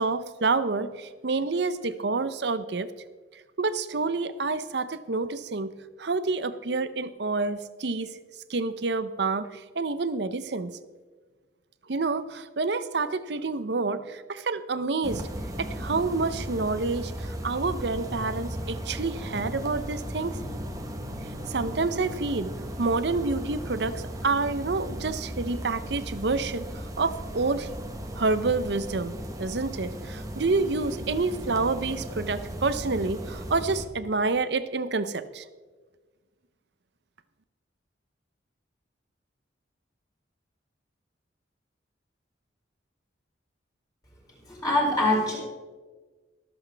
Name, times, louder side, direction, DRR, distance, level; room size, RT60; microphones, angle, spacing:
voice 1, 0.0-2.9 3.6-5.7 6.0-8.1 8.5-9.5 9.8-10.7 11.9-15.2 15.6-17.1 17.4-20.3 21.5-22.5 22.8-26.7 27.0-27.7 28.2-29.1 29.4-35.4, right 3 dB, 60° right, 13 dB, 0.7 m, -28 dB
sound 1, 15.0-33.8, equal, 20° right, 1.1 m, -36 dB
voice 2, 44.5-45.4, left 1 dB, 20° left, -5 dB, 4.8 m, -23 dB
23.5 x 8.0 x 3.4 m, 1.4 s
head